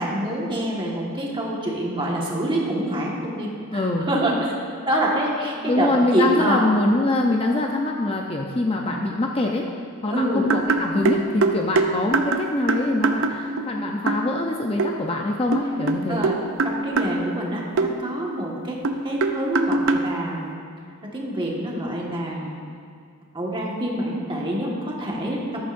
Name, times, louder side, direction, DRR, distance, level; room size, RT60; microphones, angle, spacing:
voice 1, 0.0-4.6 4.8-6.7 10.1-10.5 16.1-16.4 16.6-20.5 21.1-22.6 23.3-25.7, right 1 dB, 20° right, -3 dB, 1.6 m, -26 dB
voice 2, 3.7-4.1 5.6-9.7 10.0-16.3, left 2 dB, 25° left, 1 dB, 0.6 m, -24 dB
sound 1, 10.5-13.7 14.1-14.3 14.8-14.9 15.5-17.2 17.8-17.9 18.8-20.1, right 3 dB, 60° right, 0.6 m, -22 dB
14.0 x 11.0 x 2.6 m, 2.1 s
head